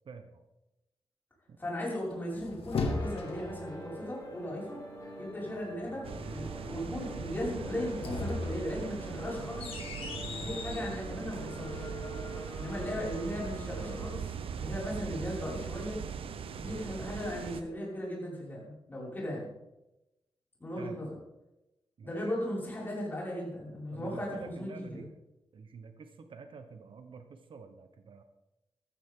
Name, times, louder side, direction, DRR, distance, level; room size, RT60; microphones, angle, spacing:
voice 1, 0.0-0.4 1.5-1.6 20.8-21.1 22.0-22.3 23.9-25.1 25.5-28.2, right 5 dB, 65° right, 7 dB, 1.2 m, -48 dB
voice 2, 1.6-4.8 5.2-6.1 6.3-9.8 10.4-11.9 12.6-16.0 16.5-19.5 20.6-21.2 22.0-25.1, equal, 20° left, -5 dB, 6.0 m, -37 dB
sound 1, 2.1-3.6 7.7-10.9, left 3 dB, 85° left, 2.0 m, -37 dB
sound 2, 2.7-14.1, equal, 35° left, 6.6 m, -45 dB
sound 3, 6.0-17.6, right 7 dB, 80° right, 0.9 m, -40 dB
14.5 x 14.5 x 3.9 m, 0.93 s
wide cardioid pair, 160°, 9 cm